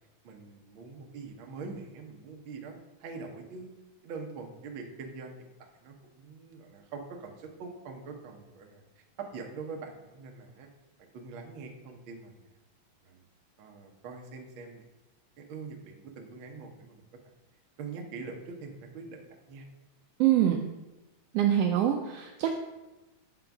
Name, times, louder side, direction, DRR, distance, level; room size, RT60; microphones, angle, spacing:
voice 1, 0.2-3.7 4.0-10.7 11.0-12.5 13.0-13.2 13.6-14.9 15.4-17.0 17.8-19.7, right 4 dB, 65° right, 2 dB, 1.3 m, -44 dB
voice 2, 20.2-20.6 21.3-22.6, right 11 dB, 80° right, 3 dB, 1.4 m, -25 dB
8.1 x 3.8 x 5.8 m, 1.1 s
omnidirectional pair, 3.4 m